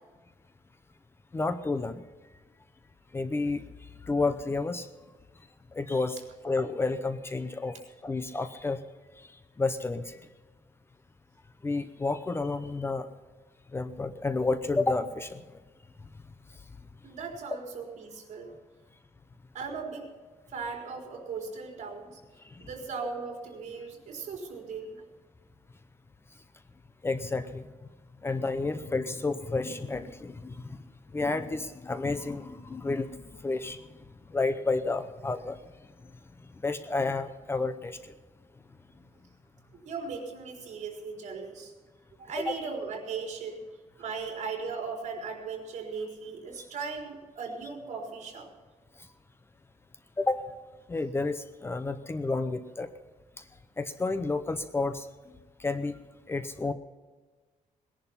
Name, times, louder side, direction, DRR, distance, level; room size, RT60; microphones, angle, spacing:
voice 1, 1.3-2.0 3.1-4.9 5.7-6.2 6.4-8.8 9.2-10.2 11.6-13.1 13.7-15.4 22.4-22.7 27.0-27.7 28.2-30.8 31.1-33.9 34.3-35.6 36.0-36.1 36.4-38.1 46.6-46.7 49.0-49.1 50.2-50.4 50.9-52.9 53.4-53.5 53.8-55.1 55.6-56.0 56.3-56.7, left 3 dB, 20° left, 10 dB, 0.7 m, -31 dB
voice 2, 17.0-18.5 19.5-20.1 20.5-22.2 22.6-25.0 39.8-41.7 42.2-43.6 44.0-48.5, right 5 dB, 60° right, 1 dB, 4.3 m, -38 dB
20.0 x 11.0 x 5.7 m, 1.3 s
wide cardioid pair, 170°, 13 cm